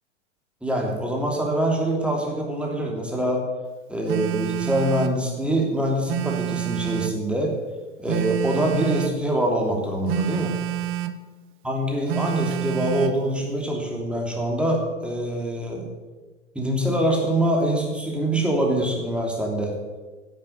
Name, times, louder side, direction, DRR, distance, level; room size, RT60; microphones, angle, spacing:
voice 1, 0.6-3.4 3.9-7.5 8.0-10.5 11.6-15.9 16.5-19.7, right 1 dB, 5° right, -1 dB, 2.9 m, -24 dB
Telephone, 4.1-5.2 6.1-7.2 8.1-9.2 10.1-11.2 12.1-13.2, right 14 dB, 35° right, 0.8 m, -28 dB
10.5 x 8.0 x 8.0 m, 1.3 s
hypercardioid pair, 100°, 37 cm